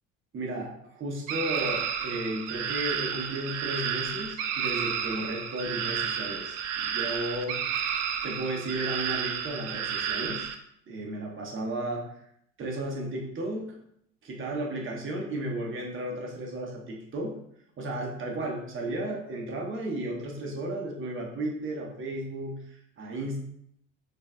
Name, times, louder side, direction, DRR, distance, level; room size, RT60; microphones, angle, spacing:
voice 1, 0.3-6.6 6.8-7.6 8.2-10.5 10.9-12.1 12.6-13.7 14.2-17.4 17.8-23.4, right 1 dB, 30° right, -1 dB, 1.1 m, -34 dB
sound 1, 1.3-10.6, right 8 dB, 65° right, 0.5 m, -31 dB
5.3 x 2.7 x 2.2 m, 0.72 s
hypercardioid pair, 65°, 39 cm